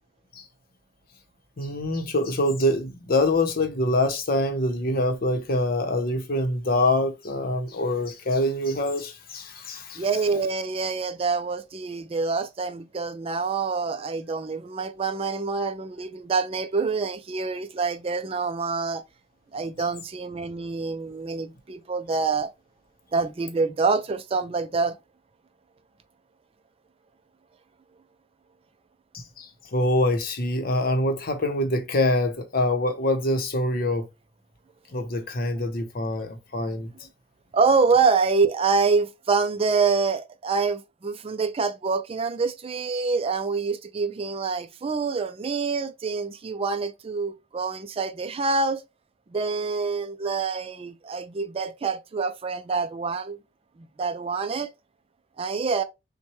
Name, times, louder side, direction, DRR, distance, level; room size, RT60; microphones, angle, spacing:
voice 1, 1.6-10.0 29.1-34.1 34.9-36.9, left 1 dB, 55° left, 0.8 m, -25 dB
voice 2, 10.0-19.0 19.5-22.5 23.1-25.0 37.5-48.8 49.3-53.4 54.0-54.7 55.4-55.8, right 4 dB, 30° right, 0.4 m, -26 dB
5.9 x 2.2 x 3.1 m
head